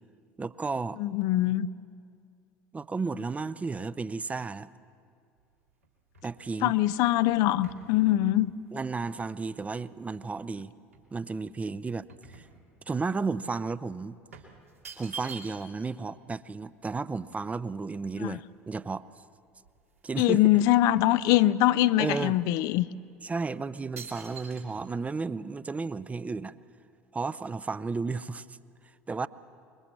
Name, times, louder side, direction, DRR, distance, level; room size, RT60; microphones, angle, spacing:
voice 1, 0.4-1.0 2.7-4.7 6.2-6.8 8.7-10.7 11.1-12.5 12.9-14.2 15.0-19.1 20.0-20.4 22.0-22.3 23.2-26.5 27.1-28.6 29.1-29.3, right 4 dB, 20° right, 16 dB, 0.7 m, -33 dB
voice 2, 1.0-1.7 6.6-8.5 18.2-18.4 20.2-22.9, left 14 dB, 55° left, 15 dB, 0.6 m, -23 dB
sound 1, 5.4-10.5 10.9-13.1 13.4-13.6 14.3-15.9 16.2-16.3 16.5-18.6 19.2-19.3 19.5-20.3 20.6-21.8 22.4-22.5 23.2-23.4 24.0-24.6, right 5 dB, 80° right, 2.8 m, -48 dB
25.5 x 22.5 x 7.5 m, 2.3 s
figure-of-eight pair, 65°, 8 cm